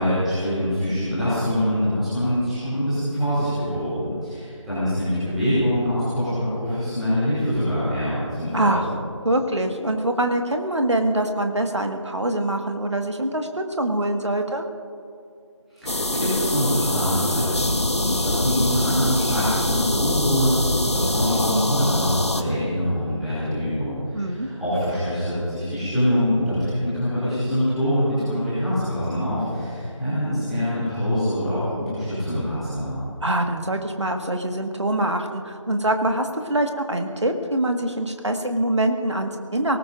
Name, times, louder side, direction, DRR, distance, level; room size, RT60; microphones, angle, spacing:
voice 1, 0.0-8.7 15.7-33.0, equal, ahead, -18 dB, 2.6 m, -24 dB
voice 2, 8.5-8.9 9.2-14.6 24.1-24.5 33.2-39.8, right 1 dB, 60° right, 5 dB, 1.6 m, -24 dB
sound 1, 15.9-22.4, left 1 dB, 55° left, 1.1 m, -24 dB
26.0 x 19.0 x 2.6 m, 2.5 s
figure-of-eight pair, 170°, 17 cm